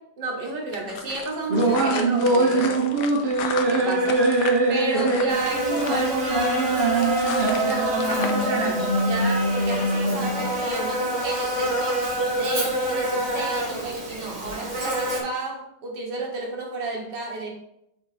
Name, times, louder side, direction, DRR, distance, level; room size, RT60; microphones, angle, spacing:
voice 1, 0.2-3.1 3.7-4.4 4.7-7.1 7.6-17.5, right 3 dB, 75° right, -1 dB, 2.0 m, -32 dB
sound 1, 0.7-8.5, left 6 dB, 75° left, 1.2 m, -35 dB
sound 2, 1.5-10.5, right 2 dB, 40° right, 1.2 m, -23 dB
Buzz, 5.3-15.2, right 1 dB, 15° right, 1.9 m, -27 dB
6.2 x 3.7 x 5.0 m, 0.79 s
omnidirectional pair, 1.9 m